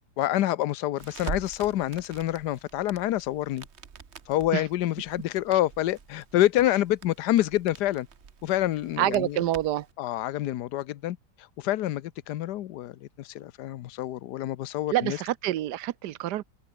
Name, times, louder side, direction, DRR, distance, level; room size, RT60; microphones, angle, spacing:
voice 1, 0.2-3.6 4.3-8.1 8.4-9.4 10.0-15.2, left 14 dB, 80° left, 1.3 m, -27 dB
Crackle, 1.0-9.9, right 6 dB, 45° right, 1.4 m, -44 dB
voice 2, 9.0-9.9 14.9-16.4, right 13 dB, 90° right, 1.3 m, -27 dB
omnidirectional pair, 1.8 m